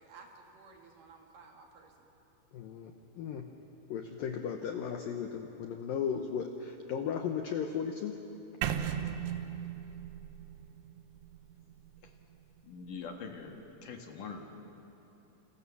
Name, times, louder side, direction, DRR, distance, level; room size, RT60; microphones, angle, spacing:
voice 1, 0.0-2.1, right 4 dB, 55° right, 2 dB, 3.2 m, -55 dB
voice 2, 2.5-3.5 3.9-8.2, left 7 dB, 75° left, 5 dB, 2.1 m, -36 dB
sound 1, 8.6-12.6, right 9 dB, 80° right, 3.5 m, -37 dB
voice 3, 12.6-13.6 13.8-14.4, left 5 dB, 55° left, 3 dB, 2.8 m, -43 dB
29.5 x 28.5 x 7.2 m, 3.0 s
omnidirectional pair, 5.5 m